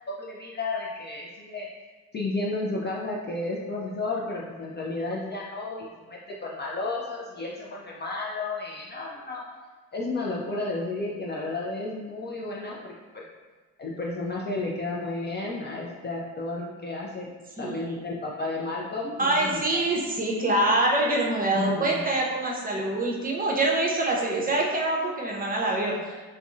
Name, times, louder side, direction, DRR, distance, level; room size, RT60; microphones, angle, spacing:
voice 1, 0.2-1.7 2.1-9.4 9.9-13.3 13.8-19.8 21.5-22.0, left 2 dB, 25° left, -3 dB, 0.3 m, -32 dB
voice 2, 17.6-17.9 19.2-26.3, right 2 dB, 20° right, -2 dB, 0.6 m, -25 dB
3.5 x 2.1 x 2.4 m, 1.3 s
hypercardioid pair, 50°, 48 cm